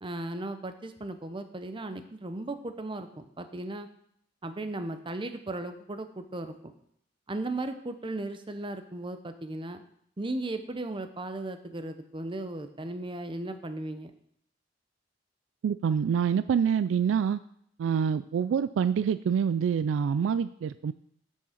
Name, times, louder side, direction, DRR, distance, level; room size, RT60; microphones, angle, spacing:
voice 1, 0.0-3.9 4.4-6.7 7.3-9.8 10.2-14.1, right 2 dB, 25° right, 9 dB, 0.7 m, -36 dB
voice 2, 15.6-17.4 17.8-20.9, right 7 dB, 90° right, 15 dB, 0.3 m, -26 dB
8.5 x 6.4 x 5.8 m, 0.69 s
head